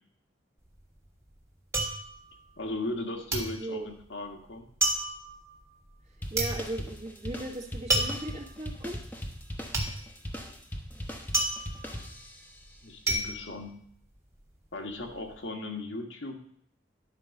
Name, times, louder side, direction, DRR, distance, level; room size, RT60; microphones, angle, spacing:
sound 1, 0.6-3.0 3.3-14.4 14.8-15.3, right 2 dB, 15° right, 1.5 m, -32 dB
voice 1, 2.6-4.7 12.8-13.8 14.7-16.4, left 2 dB, 75° left, 2 dB, 1.6 m, -37 dB
voice 2, 3.5-3.9 6.3-9.0, right 2 dB, 35° right, 0 dB, 1.6 m, -37 dB
sound 2, 6.2-12.6, equal, 10° left, 1.0 m, -40 dB
11.0 x 4.7 x 6.5 m, 0.63 s
head